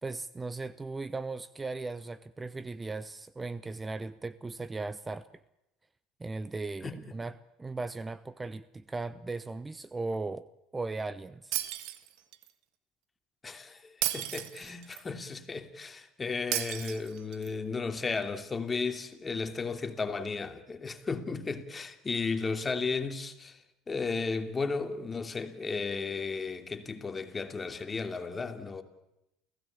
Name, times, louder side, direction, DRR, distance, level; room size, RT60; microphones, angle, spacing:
voice 1, 0.0-5.3 6.2-10.5 10.7-11.6, right 3 dB, 20° right, 0.8 m, -37 dB
Shatter, 11.5-12.5 14.0-15.0 16.5-17.5, right 14 dB, 70° right, 1.7 m, -34 dB
voice 2, 13.4-23.6 23.9-28.8, left 4 dB, 25° left, 2.9 m, -34 dB
29.5 x 16.0 x 8.7 m
hypercardioid pair, 70°, 0 cm